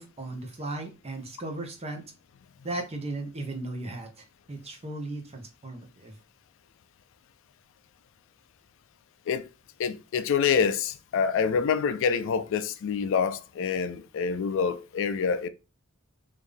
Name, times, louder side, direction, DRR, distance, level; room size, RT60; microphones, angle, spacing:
voice 1, 0.0-2.0 2.6-6.2, right 2 dB, 30° right, 0.8 m, -36 dB
voice 2, 9.8-15.5, left 6 dB, 60° left, 0.3 m, -26 dB
3.4 x 2.6 x 3.5 m
head